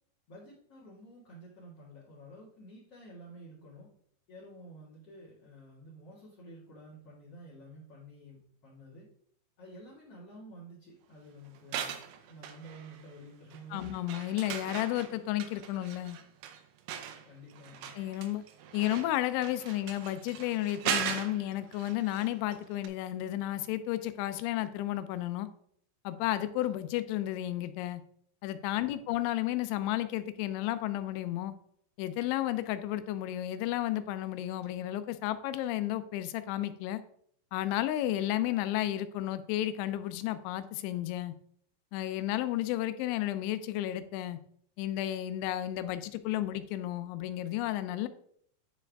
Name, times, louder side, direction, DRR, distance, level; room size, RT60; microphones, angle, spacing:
voice 1, 0.3-3.9 4.3-9.1 9.6-11.9 12.3-13.9 17.3-17.9 28.7-29.0, right 1 dB, 50° left, -7 dB, 1.8 m, -51 dB
sound 1, 11.5-13.2 13.5-22.6 22.8-22.9, right 8 dB, 80° right, 2.5 m, -39 dB
voice 2, 13.7-16.2 18.0-18.4 18.7-25.5 26.0-28.0 28.4-31.5 32.0-37.0 37.5-41.3 41.9-44.4 44.8-48.1, left 14 dB, 85° left, 12 dB, 3.0 m, -32 dB
10.5 x 4.7 x 3.5 m, 0.64 s
omnidirectional pair, 5.3 m